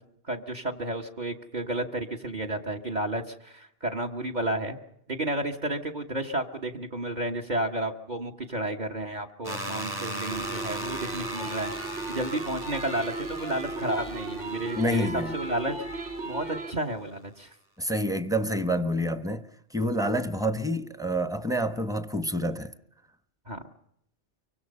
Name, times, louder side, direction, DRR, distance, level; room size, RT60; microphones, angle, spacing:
voice 1, 0.3-4.8 5.1-11.7 12.1-17.5 23.5-23.6, right 1 dB, 40° right, 1.5 m, -32 dB
sound 1, 9.4-16.3, right 1 dB, 20° right, 1.3 m, -39 dB
sound 2, 10.3-16.7, right 2 dB, 75° right, 2.6 m, -36 dB
voice 2, 14.8-15.4 17.8-22.7, equal, 5° right, 0.9 m, -28 dB
24.5 x 24.0 x 5.5 m
omnidirectional pair, 1.2 m